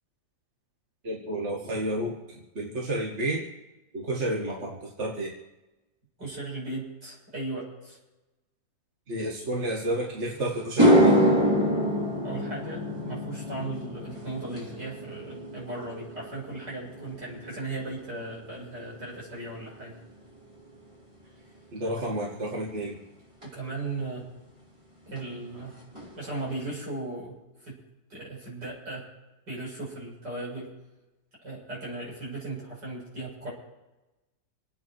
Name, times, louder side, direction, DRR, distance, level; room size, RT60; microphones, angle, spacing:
voice 1, 1.0-2.2 2.6-3.4 3.9-5.3 9.1-11.2 21.7-23.0, right 1 dB, 40° right, -2 dB, 2.2 m, -31 dB
voice 2, 6.2-8.0 12.2-19.9 23.4-24.3 25.1-25.8 26.2-27.8 28.1-29.1 29.5-30.7 31.4-33.5, right 2 dB, 65° right, -5 dB, 8.0 m, -37 dB
sound 1, 10.1-10.2 10.6-19.1 19.4-19.8 23.4-23.5 25.2-25.3 25.5-25.7 25.9-26.5, equal, 15° right, 3.9 m, -26 dB
27.5 x 9.6 x 4.7 m, 1.0 s
omnidirectional pair, 2.0 m